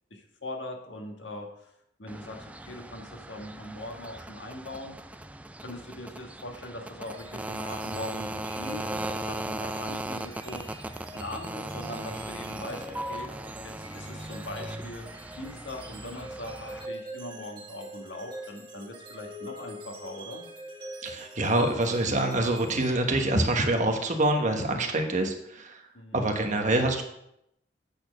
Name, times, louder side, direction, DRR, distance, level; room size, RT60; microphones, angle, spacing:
voice 1, 0.1-1.7 2.0-4.9 5.6-10.7 11.1-13.3 13.6-15.0 15.4-20.4 25.9-26.2, left 1 dB, 85° left, 2 dB, 1.6 m, -41 dB
sound 1, 2.1-16.9, right 1 dB, 10° right, 0.3 m, -38 dB
sound 2, 7.1-23.7, right 1 dB, 30° right, 1.2 m, -44 dB
voice 2, 21.0-25.8 26.1-27.0, right 2 dB, 45° right, 4 dB, 1.2 m, -26 dB
8.6 x 4.4 x 6.5 m, 0.78 s
head